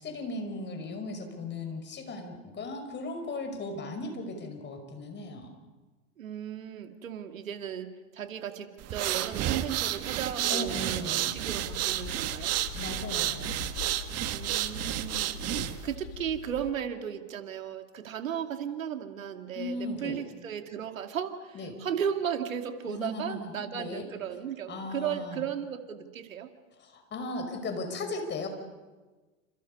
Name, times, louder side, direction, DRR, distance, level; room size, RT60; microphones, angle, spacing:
voice 1, 0.0-5.5 10.5-11.4 12.8-13.6 19.5-20.2 21.5-21.7 22.9-24.1 24.7-25.4 26.8-28.5, left 2 dB, 25° left, 5 dB, 5.8 m, -37 dB
voice 2, 6.2-12.5 14.3-26.5, right 8 dB, 80° right, 7 dB, 2.4 m, -35 dB
sound 1, 8.8-15.9, right 13 dB, 40° right, 1.7 m, -31 dB
sound 2, 11.5-16.7, left 10 dB, 70° left, 1.4 m, -43 dB
28.5 x 27.5 x 5.5 m, 1.3 s
hypercardioid pair, 100°, 39 cm